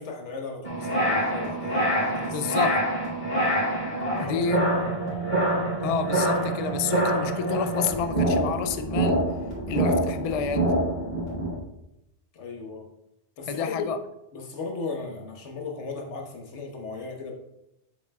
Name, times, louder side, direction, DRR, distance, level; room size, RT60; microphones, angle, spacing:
voice 1, 0.0-2.5 4.1-4.4 4.8-4.9 12.3-12.9 13.4-13.9 14.3-17.3, left 4 dB, 90° left, 1.4 m, -36 dB
sound 1, 0.6-11.5, right 1 dB, 40° left, 2.7 m, -26 dB
voice 2, 2.3-2.8 4.2-4.8 5.8-9.2 9.7-10.8 13.5-14.0, left 6 dB, 65° left, 0.3 m, -29 dB
7.4 x 6.8 x 2.3 m
omnidirectional pair, 1.2 m